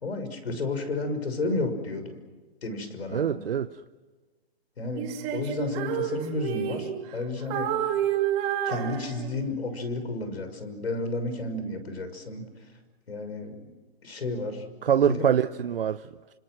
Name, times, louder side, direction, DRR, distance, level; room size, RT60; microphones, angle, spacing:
voice 1, 0.0-2.2 2.6-3.4 4.8-7.7 8.6-12.5 13.1-13.6 14.0-14.6 15.0-15.2, left 2 dB, 80° left, 8 dB, 5.9 m, -32 dB
voice 2, 3.1-3.8 14.8-16.3, right 8 dB, 65° right, 11 dB, 0.9 m, -25 dB
Female singing, 5.0-7.2 7.5-9.6, right 11 dB, 25° right, 3.1 m, -29 dB
30.0 x 26.0 x 6.2 m, 1.3 s
hypercardioid pair, 150°, 31 cm